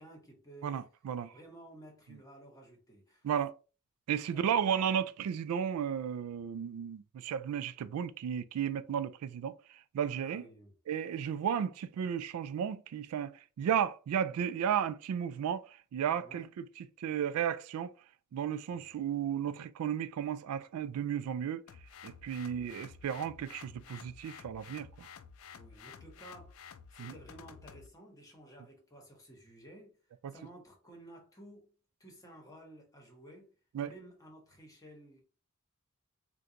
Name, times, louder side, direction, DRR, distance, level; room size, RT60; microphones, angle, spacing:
voice 1, 0.0-0.8 1.3-3.3 4.3-4.9 10.2-10.7 16.1-16.5 18.7-18.9 22.5-22.8 25.5-26.6 26.9-30.0 30.3-31.7 32.0-33.5 33.8-35.2, right 1 dB, 15° left, 1.0 m, -54 dB
voice 2, 0.6-1.3 3.2-3.5 4.1-9.5 9.9-10.5 10.9-15.6 15.9-17.9 18.3-21.6 22.0-25.1 27.0-27.1 30.2-30.3 33.7-33.9, right 8 dB, 90° right, 0.3 m, -34 dB
sound 1, 21.7-27.9, left 7 dB, 70° left, 0.3 m, -52 dB
3.7 x 2.2 x 2.8 m
head